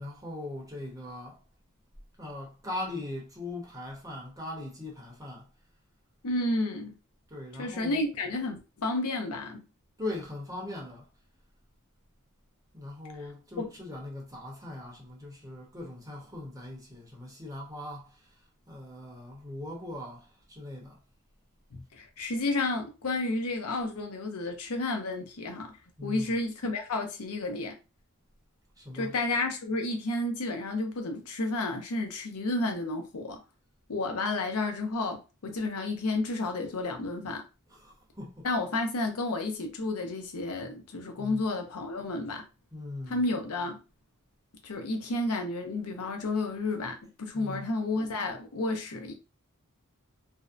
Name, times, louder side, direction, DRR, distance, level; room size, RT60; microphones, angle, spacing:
voice 1, 0.0-1.4 2.2-5.5 7.3-8.0 10.0-11.1 12.7-21.0 26.0-26.4 28.8-29.1 37.7-38.5 41.2-41.4 42.7-43.2 47.3-47.7, left 2 dB, 15° right, 0.7 m, -40 dB
voice 2, 6.2-6.9 7.6-9.6 13.6-13.7 21.7-25.7 26.0-27.7 28.9-33.4 33.9-37.5 38.4-42.4 43.1-43.8 44.6-49.1, left 2 dB, 80° left, 0.6 m, -31 dB
2.5 x 2.1 x 2.4 m
head